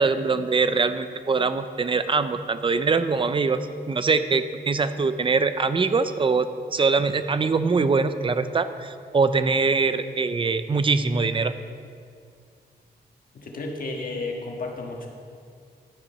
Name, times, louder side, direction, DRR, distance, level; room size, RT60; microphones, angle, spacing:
voice 1, 0.0-3.6 3.9-11.5, right 4 dB, 30° right, 11 dB, 0.5 m, -23 dB
voice 2, 13.3-15.1, left 3 dB, 55° left, 1 dB, 1.5 m, -32 dB
11.5 x 6.9 x 5.7 m, 2.2 s
wide cardioid pair, 145°, 17 cm